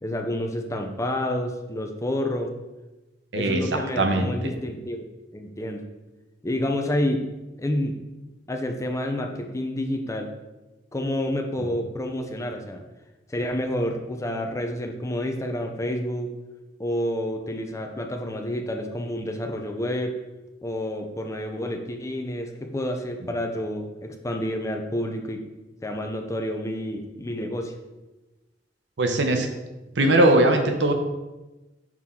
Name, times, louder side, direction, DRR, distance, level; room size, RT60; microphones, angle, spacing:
voice 1, 0.0-2.5 3.3-5.1 5.3-5.8 6.4-7.3 7.6-8.0 8.5-10.3 10.9-12.8 13.3-16.3 16.8-20.2 20.6-25.4 25.8-27.7, left 1 dB, 15° left, 4 dB, 0.5 m, -29 dB
voice 2, 3.3-4.5 29.0-29.5 30.0-30.9, right 1 dB, 80° right, 5 dB, 0.8 m, -20 dB
6.0 x 4.3 x 3.7 m, 1.1 s
head